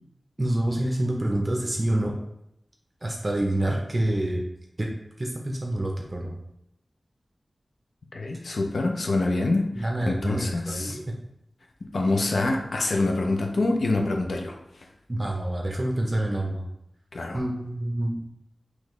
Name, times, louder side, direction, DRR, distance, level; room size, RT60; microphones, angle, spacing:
voice 1, 0.4-2.1 3.0-4.4 4.8-4.9 5.2-6.3 9.8-11.1 15.1-16.6 17.3-18.2, right 1 dB, 35° right, 0 dB, 0.7 m, -27 dB
voice 2, 8.1-11.0 11.8-14.6 17.1-17.4, left 2 dB, 80° left, 2 dB, 0.5 m, -26 dB
4.0 x 3.1 x 3.1 m, 0.81 s
wide cardioid pair, 70°, 0 cm